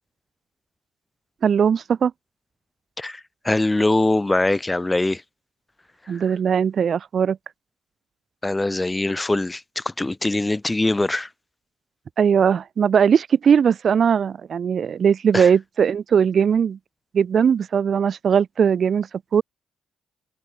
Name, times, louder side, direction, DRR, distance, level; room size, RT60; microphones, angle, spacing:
voice 1, 1.4-2.1 6.1-7.4 12.2-16.8 17.1-19.4, right 7 dB, 50° right, 0.6 m, -19 dB
voice 2, 3.4-5.2 8.4-11.3 15.3-15.5, left 2 dB, 15° left, 1.5 m, -22 dB
cardioid pair, 90°, 0 cm